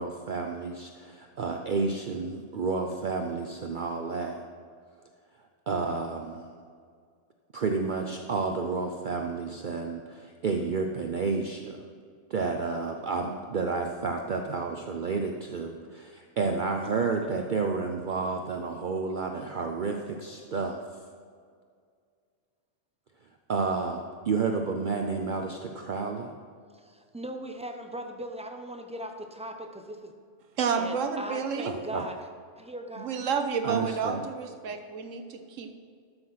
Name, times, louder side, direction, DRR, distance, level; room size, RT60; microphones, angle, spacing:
voice 1, 0.0-4.4 5.7-6.4 7.5-11.8 12.3-20.8 23.5-26.3 31.7-32.1 33.6-34.2, right 4 dB, 50° right, 4 dB, 0.7 m, -30 dB
voice 2, 26.7-30.1 30.8-32.2 32.6-33.1 34.7-34.8, right 1 dB, 5° right, 4 dB, 0.6 m, -39 dB
voice 3, 30.6-31.8 33.0-35.7, right 6 dB, 85° right, 7 dB, 1.3 m, -30 dB
12.5 x 6.2 x 5.7 m, 2.1 s
omnidirectional pair, 1.3 m